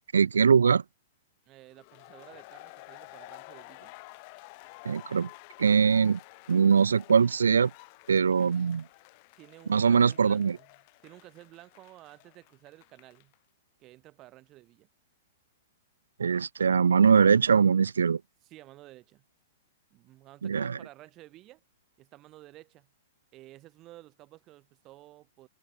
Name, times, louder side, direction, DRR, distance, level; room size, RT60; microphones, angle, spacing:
voice 1, 0.1-0.8 4.8-5.3 5.6-6.2 6.5-7.7 8.1-8.8 9.7-10.6 16.2-18.2 20.4-20.8, right 6 dB, 85° right, 0.3 m, -22 dB
voice 2, 1.5-3.9 9.4-13.3 13.8-14.9 18.4-19.2 19.9-21.6 22.0-22.9 23.3-25.5, right 17 dB, 35° right, 3.0 m, -53 dB
sound 1, 1.7-13.4, left 29 dB, 45° left, 3.6 m, -51 dB
hypercardioid pair, 120°, 0 cm